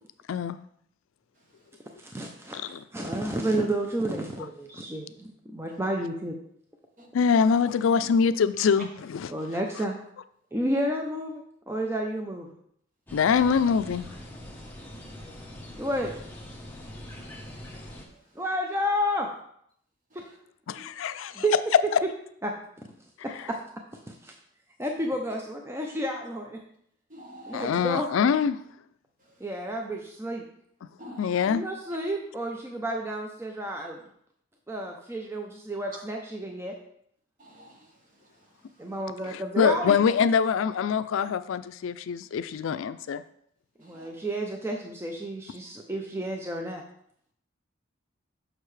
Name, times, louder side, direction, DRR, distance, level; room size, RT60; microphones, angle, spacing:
voice 1, 2.0-6.4 9.3-10.0 10.5-12.5 15.8-16.2 18.4-19.3 20.1-20.3 21.3-21.5 22.4-22.5 23.2-23.6 24.1-24.3 24.8-26.6 27.5-28.1 29.4-30.4 31.5-34.0 34.7-36.7 38.8-40.0 43.8-46.8, right 1 dB, 10° right, 0.5 m, -31 dB
voice 2, 7.1-9.3 13.1-14.1 20.7-21.4 27.5-28.6 31.2-31.6 39.2-43.2, left 6 dB, 80° left, 0.3 m, -24 dB
sound 1, 13.1-18.1, left 1 dB, 10° left, 0.9 m, -43 dB
voice 3, 27.1-27.7 31.0-31.2 37.4-37.7 43.9-44.1, equal, 40° right, 1.3 m, -46 dB
6.7 x 6.2 x 3.2 m
head